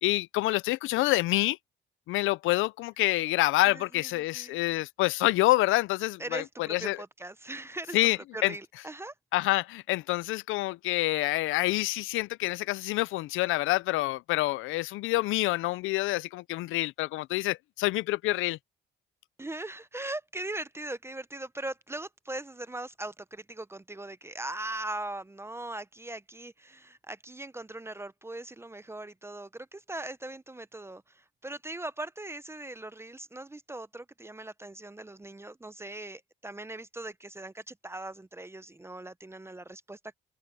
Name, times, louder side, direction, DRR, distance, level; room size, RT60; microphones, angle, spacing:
voice 1, 0.0-1.6 2.1-6.4 6.7-7.0 7.9-8.5 9.3-18.6, left 18 dB, 90° left, 0.4 m, -27 dB
voice 2, 3.6-4.6 6.2-9.1 19.4-40.2, right 2 dB, 15° right, 0.6 m, -40 dB
cardioid pair, 90°, 20 cm